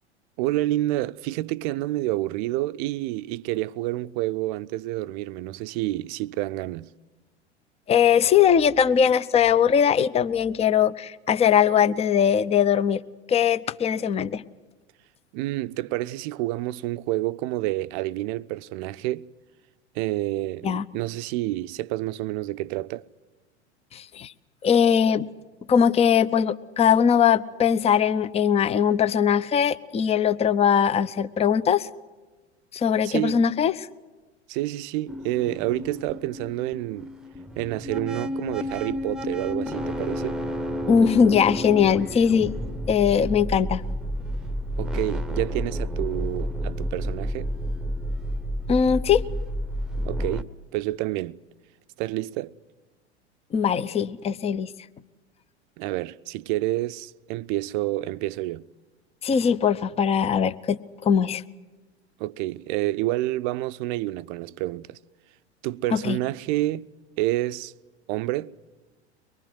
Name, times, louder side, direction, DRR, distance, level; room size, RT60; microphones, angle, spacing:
voice 1, 0.4-6.9 15.3-19.3 19.9-23.1 33.0-33.4 34.5-37.1 37.6-40.4 44.8-47.5 50.0-51.4 52.0-52.5 55.8-58.7 62.2-65.0 65.6-66.9 67.2-67.7 68.1-68.5, right 17 dB, 45° right, 0.6 m, -28 dB
voice 2, 7.9-13.0 13.3-14.4 20.6-20.9 23.9-24.3 24.6-25.3 25.7-31.9 32.7-33.7 40.9-42.5 42.9-43.8 48.7-49.2 53.5-54.7 59.2-61.4 65.9-66.2, left 7 dB, 20° left, 0.7 m, -21 dB
sound 1, 35.1-50.4, equal, ahead, 1.0 m, -31 dB
24.0 x 21.5 x 7.9 m
figure-of-eight pair, 85°, 34 cm